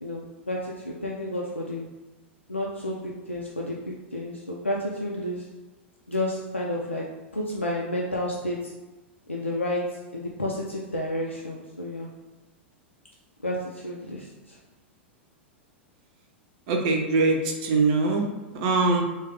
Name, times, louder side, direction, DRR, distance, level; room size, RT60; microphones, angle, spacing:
voice 1, 0.0-1.9 2.5-5.5 6.1-8.7 9.3-12.1 13.4-14.6, left 1 dB, 90° left, -3 dB, 0.4 m, -31 dB
voice 2, 16.7-18.3 18.5-19.0, right 3 dB, 45° right, 2 dB, 0.6 m, -22 dB
3.3 x 2.3 x 3.4 m, 1.1 s
figure-of-eight pair, 95°, 6 cm